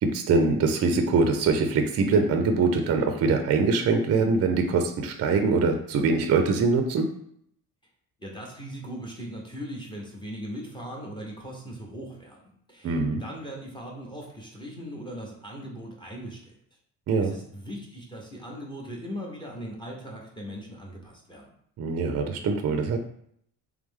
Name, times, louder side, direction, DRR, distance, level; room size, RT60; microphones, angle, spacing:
voice 1, 0.0-7.1 12.8-13.2 17.1-17.3 21.8-23.0, right 4 dB, 45° right, 6 dB, 0.4 m, -23 dB
voice 2, 8.2-16.5 17.2-21.5, equal, 15° left, -1 dB, 0.7 m, -39 dB
3.4 x 3.1 x 3.6 m, 0.67 s
cardioid pair, 165°, 37 cm